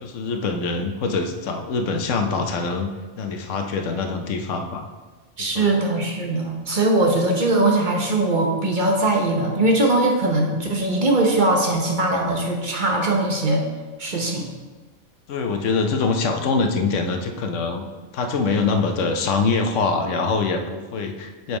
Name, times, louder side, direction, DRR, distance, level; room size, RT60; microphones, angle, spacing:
voice 1, 0.0-2.9 3.2-4.9 5.4-5.7 15.3-17.9 18.1-21.6, left 4 dB, 75° left, 5 dB, 1.0 m, -24 dB
voice 2, 5.4-13.6 14.0-14.5, right 2 dB, 45° right, 0 dB, 0.9 m, -21 dB
7.0 x 3.9 x 4.7 m, 1.3 s
omnidirectional pair, 1.3 m